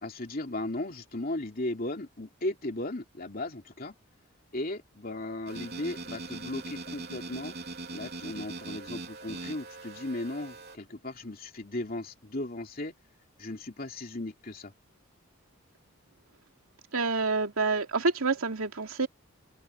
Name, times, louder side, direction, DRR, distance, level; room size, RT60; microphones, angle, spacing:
voice 1, 0.0-3.9 4.5-7.6 7.9-12.9 13.4-14.7, left 2 dB, 45° left, 2.9 m, -36 dB
sound 1, 5.5-10.8, right 3 dB, 50° right, 3.6 m, -41 dB
voice 2, 16.9-19.1, right 3 dB, 90° right, 2.5 m, -27 dB
open air
head